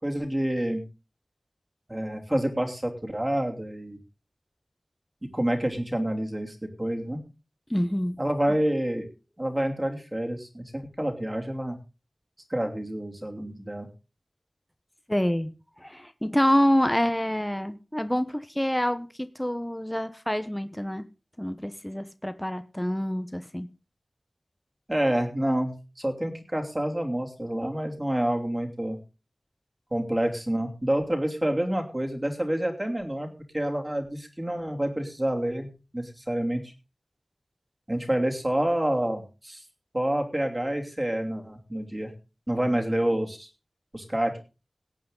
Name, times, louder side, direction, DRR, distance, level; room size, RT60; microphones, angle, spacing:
voice 1, 0.0-0.9 1.9-4.0 5.3-7.2 8.2-9.1 9.4-11.8 12.5-13.9 24.9-29.0 29.9-33.3 33.5-35.7 35.9-36.6 37.9-39.6 39.9-42.1 42.5-43.5 43.9-44.4, right 1 dB, 20° right, 2 dB, 2.9 m, -28 dB
voice 2, 7.7-8.2 15.1-15.5 15.8-19.1 19.4-21.0 21.4-23.7, equal, 10° left, 11 dB, 0.9 m, -26 dB
17.5 x 8.6 x 3.8 m, 0.31 s
wide cardioid pair, 70°, 0 cm